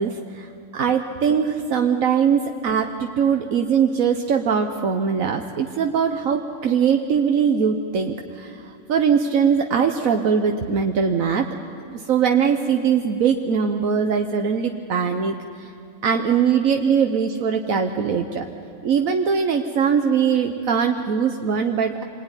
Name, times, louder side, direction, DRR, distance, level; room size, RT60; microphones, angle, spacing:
voice 1, 0.0-11.5 11.9-15.7 16.0-18.4 18.8-22.0, right 6 dB, 90° right, 4 dB, 1.5 m, -21 dB
27.0 x 20.5 x 9.8 m, 2.4 s
omnidirectional pair, 1.4 m